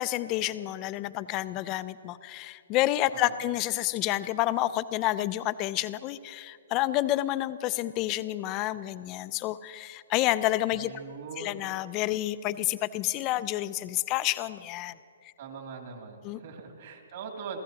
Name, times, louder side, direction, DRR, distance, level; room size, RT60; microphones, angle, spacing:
voice 1, 0.0-10.9 11.4-14.9 16.2-16.4, left 15 dB, 20° left, 15 dB, 0.3 m, -29 dB
voice 2, 10.8-11.6 15.4-17.6, right 5 dB, 50° right, 1 dB, 2.4 m, -42 dB
28.0 x 15.0 x 2.9 m, 2.3 s
hypercardioid pair, 175°, 0 cm